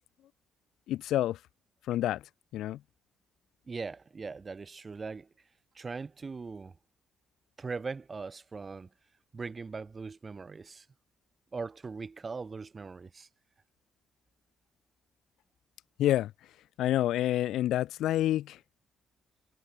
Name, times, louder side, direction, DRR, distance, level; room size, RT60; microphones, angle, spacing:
voice 1, 0.9-1.4 1.9-2.2 2.5-2.8 16.0-16.3 16.8-18.6, left 13 dB, 80° left, 4.4 m, -28 dB
voice 2, 3.7-5.3 5.7-6.8 7.6-8.9 9.3-10.9 11.5-13.3, right 4 dB, 30° right, 4.6 m, -40 dB
cardioid pair, 90°, 0 cm